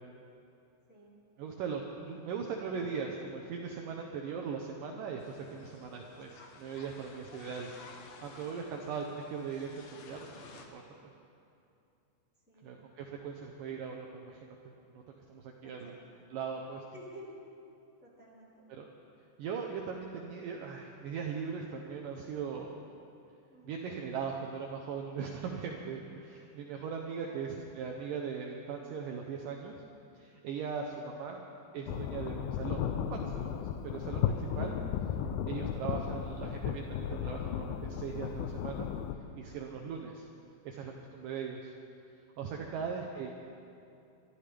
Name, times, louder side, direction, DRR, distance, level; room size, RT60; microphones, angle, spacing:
voice 1, 1.4-7.7 8.2-11.1 12.6-14.6 14.9-15.0 15.3-16.0 16.3-16.8 18.7-18.9 19.4-22.8 23.6-27.5 27.8-29.8 30.1-31.4 31.7-33.6 33.8-34.8 35.5-38.9 39.4-40.2 40.7-41.7 42.4-43.3, right 6 dB, 90° right, 1 dB, 1.9 m, -39 dB
sound 1, 5.2-10.7, left 4 dB, 70° left, 2.3 m, -53 dB
voice 2, 15.6-16.2 16.9-17.4 18.0-18.7 23.5-23.8 27.2-27.5 34.7-34.9 39.7-40.0, equal, 20° left, -8 dB, 2.0 m, -53 dB
sound 2, 31.9-39.1, left 9 dB, 85° left, 2.1 m, -35 dB
24.0 x 13.0 x 3.4 m, 2.6 s
omnidirectional pair, 5.0 m